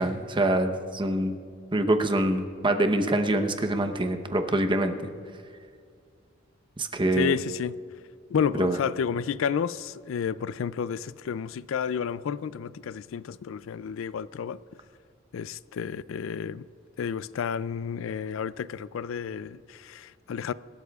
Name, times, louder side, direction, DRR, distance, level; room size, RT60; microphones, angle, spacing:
voice 1, 0.0-1.4 1.7-5.0 6.8-7.3 8.6-8.8, right 1 dB, 25° right, 0.9 m, -25 dB
voice 2, 7.1-7.8 8.3-14.6 15.3-16.6 17.0-20.5, left 7 dB, 85° left, 0.4 m, -31 dB
25.5 x 13.0 x 2.4 m
head